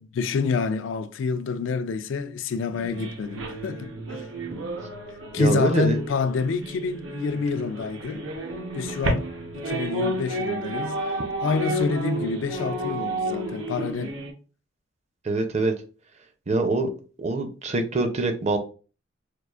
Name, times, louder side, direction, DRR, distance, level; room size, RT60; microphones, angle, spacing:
voice 1, 0.2-4.2 5.3-8.3 8.7-11.0 11.4-14.2, left 4 dB, 80° left, 0.3 m, -27 dB
sound 1, 2.7-14.3, right 1 dB, 85° right, 0.8 m, -31 dB
voice 2, 5.4-6.0 15.2-15.7 16.5-16.9 17.2-18.6, right 2 dB, 35° right, 0.5 m, -24 dB
4.5 x 2.4 x 2.4 m
head